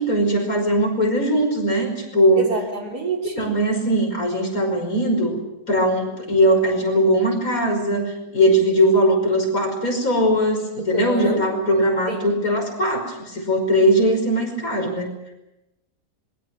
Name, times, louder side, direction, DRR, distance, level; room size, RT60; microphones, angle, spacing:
voice 1, 0.0-2.6 3.4-5.4 5.7-15.2, equal, 55° left, 3 dB, 6.0 m, -20 dB
voice 2, 2.4-3.5 10.9-11.4 12.1-12.3, right 2 dB, 65° right, 1 dB, 4.3 m, -28 dB
26.5 x 22.5 x 6.1 m, 0.93 s
omnidirectional pair, 1.8 m